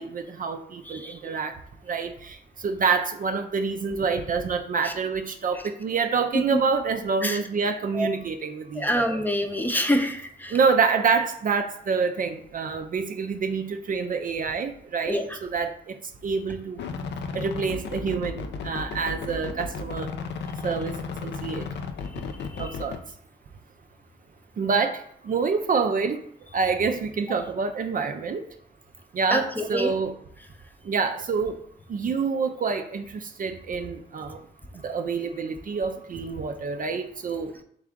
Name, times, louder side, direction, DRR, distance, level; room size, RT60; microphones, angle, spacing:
voice 1, 0.0-1.5 1.9-9.2 10.5-15.9 16.2-16.8 17.3-20.1 20.6-20.9 21.2-21.7 22.6-23.0 24.6-26.2 26.5-28.4 29.1-30.1 30.9-31.6 31.9-34.4 34.8-37.5, right 5 dB, 50° right, 6 dB, 0.5 m, -27 dB
voice 2, 0.9-1.3 4.8-4.9 7.2-7.4 7.9-8.2 8.8-10.6 15.1-15.4 22.6-22.7 29.3-29.9, equal, 10° left, 5 dB, 0.7 m, -27 dB
sound 1, 16.8-23.0, left 4 dB, 70° left, 0.5 m, -34 dB
3.5 x 3.4 x 3.7 m, 0.64 s
supercardioid pair, 45°, 19 cm